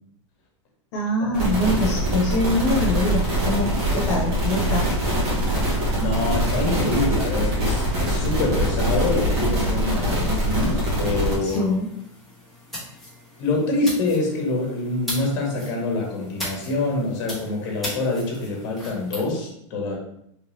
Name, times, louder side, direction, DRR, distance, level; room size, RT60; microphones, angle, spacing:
voice 1, 0.9-4.9 11.4-11.9, left 1 dB, 65° left, -3 dB, 1.0 m, -24 dB
sound 1, 1.3-11.4, right 1 dB, 50° right, 1.4 m, -23 dB
voice 2, 6.0-11.7 13.4-20.0, left 2 dB, 45° left, -1 dB, 1.2 m, -25 dB
sound 2, 11.4-19.2, left 1 dB, ahead, 1.2 m, -38 dB
3.3 x 2.8 x 3.2 m, 0.74 s
supercardioid pair, 160°, 16 cm